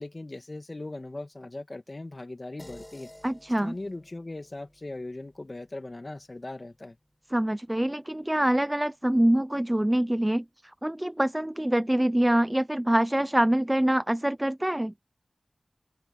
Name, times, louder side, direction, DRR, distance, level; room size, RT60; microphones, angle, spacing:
voice 1, 0.0-3.1 3.6-7.0, left 2 dB, 40° left, 2.1 m, -39 dB
sound 1, 2.6-7.3, left 1 dB, 15° left, 6.6 m, -53 dB
voice 2, 3.2-3.7 7.3-10.4 10.8-14.9, right 1 dB, 15° right, 0.6 m, -25 dB
wide cardioid pair, 55°, 0 cm